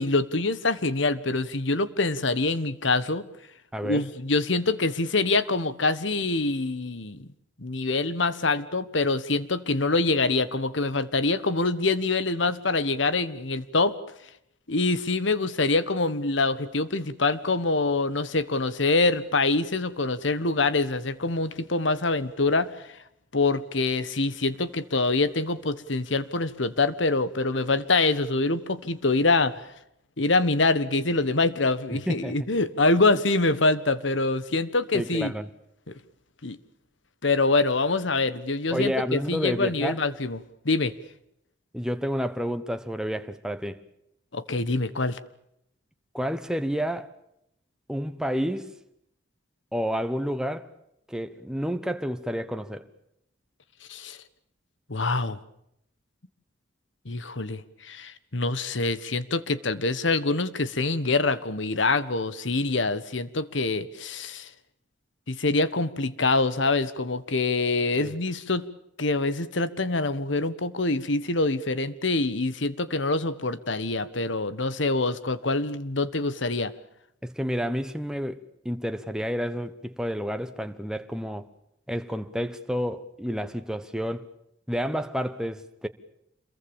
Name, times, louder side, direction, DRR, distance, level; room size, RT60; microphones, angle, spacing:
voice 1, 0.0-3.2 3.8-7.3 7.6-14.0 14.7-22.7 23.3-29.6 30.2-35.3 35.9-36.0 36.4-36.6 37.2-40.4 40.6-40.9 44.3-45.2 53.9-54.2 54.9-55.4 57.0-64.5 65.3-68.7 69.0-76.7, left 3 dB, 80° left, 1.4 m, -25 dB
voice 2, 3.7-4.1 31.9-32.3 34.9-35.5 38.7-40.0 41.7-43.8 46.1-47.1 47.9-48.7 49.7-50.7 51.1-52.8 68.0-68.1 77.2-81.5 81.9-84.3 84.7-85.9, equal, 5° right, 1.2 m, -30 dB
27.5 x 22.5 x 7.2 m
head